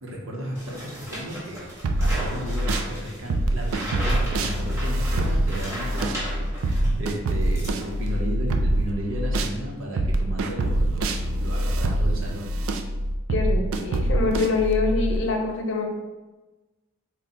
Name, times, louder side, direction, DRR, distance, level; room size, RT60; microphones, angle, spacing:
voice 1, 0.0-6.3 6.6-12.5, equal, 70° right, -1 dB, 0.8 m, -34 dB
sound 1, 0.5-6.9 7.3-8.2, right 1 dB, 15° right, 1.2 m, -36 dB
sound 2, 1.8-2.9 3.3-9.6 10.0-15.2, right 1 dB, 90° right, 0.4 m, -25 dB
voice 2, 13.3-15.9, left 3 dB, 60° left, 3 dB, 0.6 m, -25 dB
4.2 x 2.1 x 3.8 m, 1.1 s
head